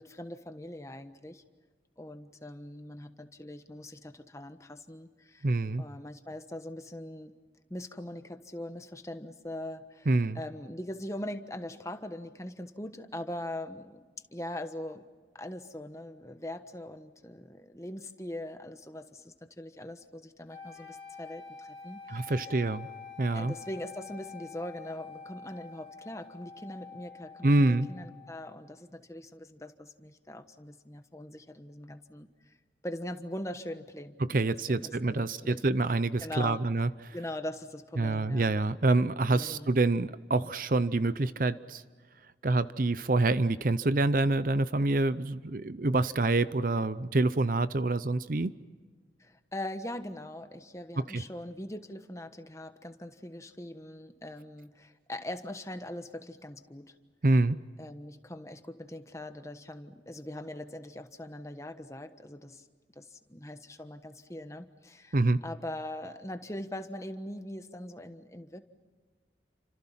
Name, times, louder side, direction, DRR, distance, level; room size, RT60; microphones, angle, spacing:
voice 1, 0.0-1.4 2.0-5.5 5.8-7.3 7.7-14.0 14.3-15.0 15.3-22.5 23.3-32.5 32.8-34.2 34.7-35.6 36.2-36.6 37.1-38.5 39.2-39.7 49.2-56.9 57.8-62.7 62.9-65.2 65.4-68.6, left 1 dB, 15° left, 8 dB, 1.3 m, -41 dB
voice 2, 5.4-5.8 10.1-10.4 22.1-22.9 23.2-23.5 27.4-27.9 34.2-36.9 38.0-41.8 42.4-48.5 51.0-51.2 57.2-57.6 65.1-65.4, right 2 dB, 50° right, 15 dB, 0.6 m, -26 dB
sound 1, 20.5-28.6, left 5 dB, 35° left, 3.3 m, -47 dB
30.0 x 26.5 x 5.8 m, 1.5 s
head